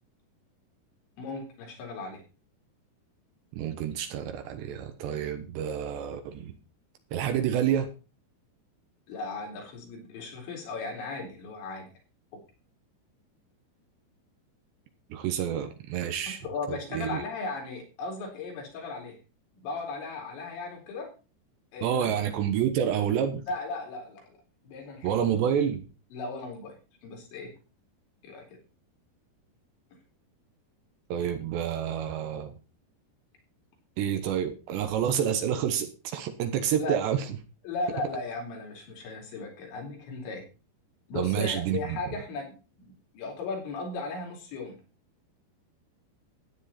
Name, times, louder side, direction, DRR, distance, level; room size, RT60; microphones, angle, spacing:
voice 1, 1.2-2.2 9.1-11.9 12.3-12.4 16.3-19.2 19.6-21.1 21.7-22.1 23.5-24.4 24.6-25.3 26.1-26.8 27.0-27.5 28.2-28.4 36.8-37.0 37.6-40.4 41.1-44.8, left 3 dB, 80° left, 0 dB, 6.3 m, -36 dB
voice 2, 3.6-6.5 7.1-7.9 15.1-16.4 16.7-17.2 21.8-23.4 25.0-25.9 31.1-32.5 34.0-37.3 41.2-42.0, right 9 dB, 75° right, 6 dB, 3.3 m, -28 dB
13.5 x 9.8 x 4.3 m, 0.33 s
omnidirectional pair, 5.1 m